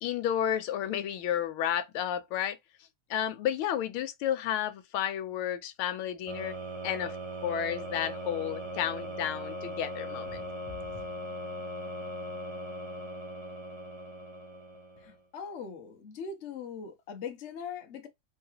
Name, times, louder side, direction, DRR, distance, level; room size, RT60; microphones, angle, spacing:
voice 1, 0.0-2.6 3.1-6.5 6.8-7.2 7.4-10.4, left 10 dB, 80° left, 1.5 m, -32 dB
sound 1, 6.3-15.2, equal, 30° right, 0.5 m, -39 dB
voice 2, 15.0-18.1, left 6 dB, 55° left, 0.8 m, -41 dB
4.0 x 3.7 x 2.8 m
omnidirectional pair, 2.3 m